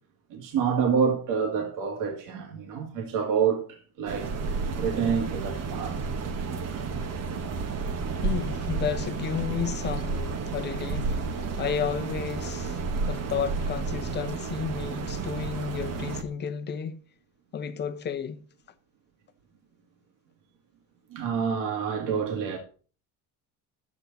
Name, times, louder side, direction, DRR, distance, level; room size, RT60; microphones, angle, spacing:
voice 1, 0.3-4.3 4.8-5.9 21.1-22.6, right 6 dB, 65° right, 2.3 m, -27 dB
sound 1, 4.1-16.2, right 4 dB, 45° right, 1.5 m, -31 dB
voice 2, 8.2-12.8 13.1-17.0 17.5-18.4, left 7 dB, 30° left, 0.8 m, -32 dB
11.5 x 8.4 x 4.1 m
cardioid pair, 160°, 35 cm